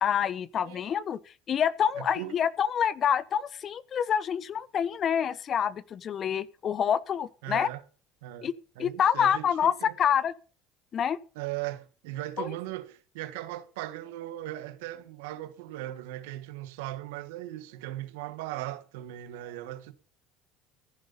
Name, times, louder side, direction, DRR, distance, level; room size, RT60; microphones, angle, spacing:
voice 1, 0.0-1.2 1.5-7.7 8.4-8.5 8.8-10.3 10.9-11.2 12.4-12.5, left 8 dB, 45° left, 0.9 m, -27 dB
voice 2, 2.0-2.4 7.4-7.8 8.2-8.5 8.7-9.9 11.3-19.9, right 15 dB, 85° right, 1.5 m, -38 dB
15.0 x 10.5 x 5.5 m
supercardioid pair, 95°, 0 cm